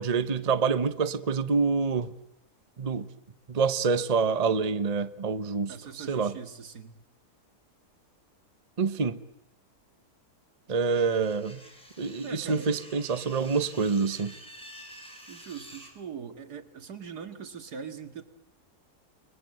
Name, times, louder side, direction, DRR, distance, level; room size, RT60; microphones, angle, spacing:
voice 1, 0.0-2.1 2.8-3.1 3.5-6.3 8.8-9.2 10.7-11.6 12.0-14.4, right 5 dB, 30° right, 12 dB, 0.9 m, -27 dB
voice 2, 5.7-7.0 12.2-12.9 15.3-18.2, right 6 dB, 80° right, 8 dB, 2.3 m, -41 dB
sound 1, 10.9-15.9, equal, 5° left, 6.3 m, -49 dB
29.5 x 21.0 x 7.8 m, 0.83 s
omnidirectional pair, 1.7 m